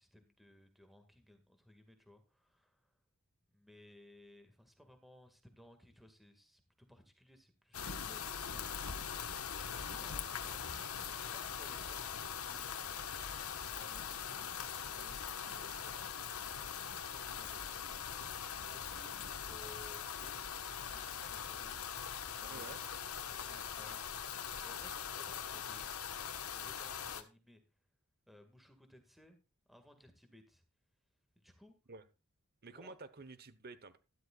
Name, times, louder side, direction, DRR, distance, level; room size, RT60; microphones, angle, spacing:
voice 1, 0.0-2.9 3.5-10.6 11.1-13.1 13.6-16.1 16.6-17.8 18.2-19.2 19.5-20.6 20.9-21.9 22.4-22.7 23.3-25.9 26.6-27.6 28.3-29.4 29.7-30.6 31.4-31.7 32.6-33.0, left 1 dB, ahead, 1.9 m, -61 dB
sound 1, 7.7-27.2, left 7 dB, 75° left, 1.3 m, -42 dB
voice 2, 22.5-22.8 31.9-32.0 32.6-34.0, right 3 dB, 45° right, 1.0 m, -51 dB
12.5 x 12.5 x 2.4 m
head